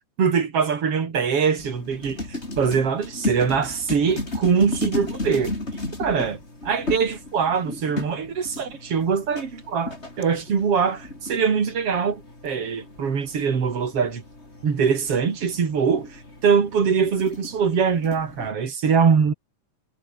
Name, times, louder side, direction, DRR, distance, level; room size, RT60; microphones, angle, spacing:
voice 1, 0.2-5.5 6.0-14.2 14.6-19.3, right 6 dB, 45° right, 3.7 m, -23 dB
sound 1, 1.6-18.5, left 2 dB, 20° left, 5.3 m, -35 dB
omnidirectional pair, 3.8 m